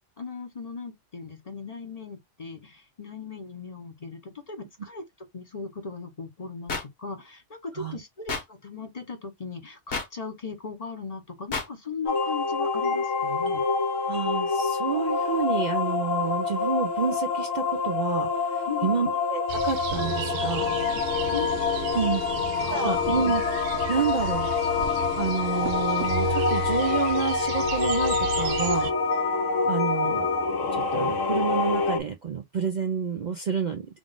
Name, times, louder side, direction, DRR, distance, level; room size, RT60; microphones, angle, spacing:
voice 1, 0.2-5.0 5.3-13.6 18.7-19.1 20.9-21.0 21.3-22.0 22.7-23.0, left 5 dB, 35° left, 0.8 m, -38 dB
sound 1, 6.7-6.8 8.3-8.4 9.9-10.1 11.5-11.7, left 4 dB, 60° left, 1.4 m, -29 dB
sound 2, 12.1-32.0, left 4 dB, 80° left, 1.3 m, -26 dB
voice 2, 14.1-20.7 21.9-22.2 22.7-23.4 23.9-24.5 25.2-28.9 29.6-30.3 30.7-33.9, right 6 dB, 50° right, 0.5 m, -29 dB
sound 3, 19.5-28.9, right 8 dB, 70° right, 0.8 m, -34 dB
3.7 x 2.4 x 3.7 m
omnidirectional pair, 1.3 m